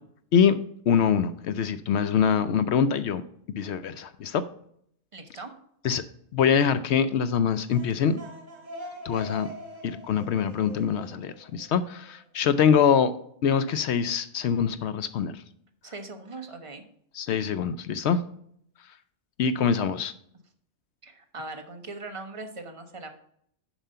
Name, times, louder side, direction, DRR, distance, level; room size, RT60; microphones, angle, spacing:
voice 1, 0.9-3.2 3.5-4.4 5.8-6.0 6.3-8.2 9.0-9.5 9.8-13.1 13.4-15.4 17.2-18.2 19.4-20.1, left 7 dB, 65° left, 13 dB, 0.8 m, -24 dB
voice 2, 5.1-5.5 15.8-16.8 21.0-23.1, right 3 dB, 25° right, 5 dB, 1.0 m, -40 dB
sound 1, 7.5-12.2, equal, 70° right, 2.8 m, -43 dB
7.3 x 5.3 x 5.6 m, 0.67 s
omnidirectional pair, 1.3 m